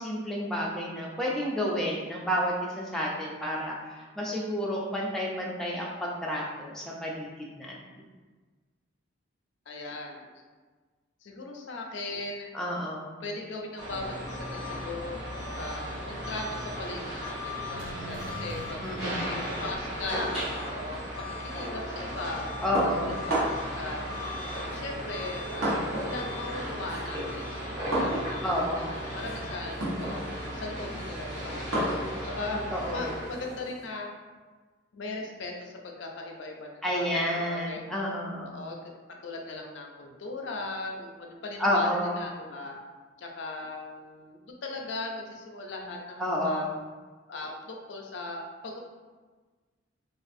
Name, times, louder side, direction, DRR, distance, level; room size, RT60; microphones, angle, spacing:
voice 1, 0.0-7.8 12.5-13.1 18.8-19.4 22.6-23.2 28.4-29.0 32.7-33.2 36.8-38.6 41.6-42.3 46.2-46.7, equal, ahead, -4 dB, 0.3 m, -30 dB
voice 2, 9.7-10.3 11.2-12.5 13.2-15.2 15.6-20.3 20.7-22.5 22.8-24.1 24.5-28.4 28.7-31.7 32.2-32.6 32.9-34.1 34.9-37.8 38.4-38.8 39.1-42.8 43.2-46.7 47.3-48.8, left 2 dB, 65° left, 1 dB, 0.4 m, -39 dB
sound 1, 13.8-33.6, equal, 35° right, 1.4 m, -36 dB
sound 2, 17.5-20.3 20.6-20.7, right 1 dB, 70° right, 0.5 m, -44 dB
sound 3, 22.7-23.8 24.7-26.2 26.5-33.8, right 1 dB, 85° right, 0.9 m, -33 dB
3.1 x 2.4 x 2.5 m, 1.4 s
head